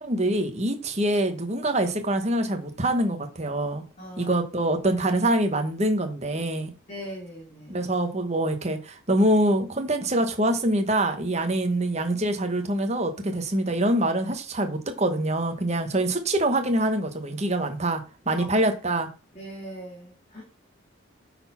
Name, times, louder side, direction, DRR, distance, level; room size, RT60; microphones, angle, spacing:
voice 1, 0.0-3.8 4.2-6.7 7.7-19.1, right 1 dB, 30° right, 1.3 m, -25 dB
voice 2, 4.0-4.3 6.9-7.8 18.3-18.4 19.3-20.4, equal, 30° left, 2.4 m, -40 dB
8.8 x 4.3 x 5.7 m
head